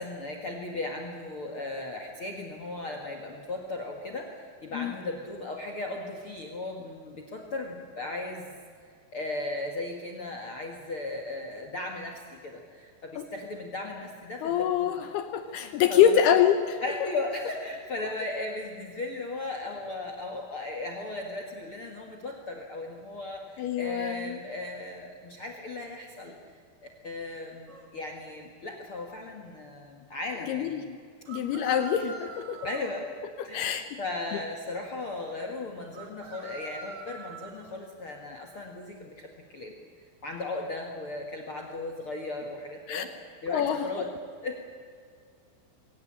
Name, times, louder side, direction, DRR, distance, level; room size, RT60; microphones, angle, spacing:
voice 1, 0.0-8.5 9.1-14.9 15.5-16.1 16.8-26.4 27.0-31.0 32.6-33.1 33.4-39.7 40.2-43.1 43.4-44.1 44.4-44.6, left 2 dB, 55° left, 3 dB, 1.6 m, -36 dB
voice 2, 14.4-16.8 23.6-24.4 30.4-30.8 31.3-32.6 33.4-34.0 34.3-34.4 42.9-43.0 43.5-43.9, left 9 dB, 75° left, 9 dB, 2.6 m, -25 dB
sound 1, 27.7-27.9 31.3-33.0 35.9-37.8, right 3 dB, 40° right, 1.7 m, -44 dB
23.0 x 18.0 x 8.8 m, 2.1 s
omnidirectional pair, 5.3 m